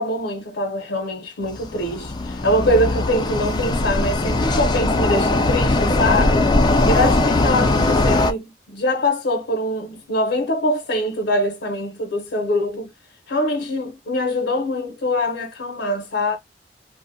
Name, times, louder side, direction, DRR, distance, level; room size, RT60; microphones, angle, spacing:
voice 1, 0.0-6.5 6.9-12.9 13.3-16.4, left 1 dB, 75° left, 0.5 m, -23 dB
sound 1, 1.5-8.3, left 2 dB, 25° left, 0.3 m, -20 dB
2.5 x 2.0 x 2.5 m
head